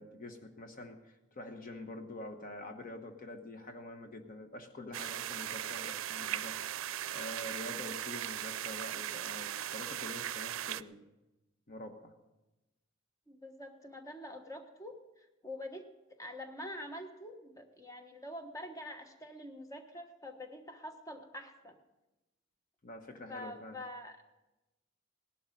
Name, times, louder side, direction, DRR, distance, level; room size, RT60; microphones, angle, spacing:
voice 1, 0.0-6.6 7.1-11.0 11.7-12.1 22.8-23.8, left 1 dB, 45° left, 5 dB, 1.1 m, -46 dB
sound 1, 4.9-10.8, right 11 dB, 85° right, 0.4 m, -38 dB
voice 2, 13.3-15.9 16.2-21.8 23.3-24.2, left 1 dB, 15° left, 5 dB, 1.3 m, -46 dB
18.0 x 11.5 x 5.3 m, 1.0 s
head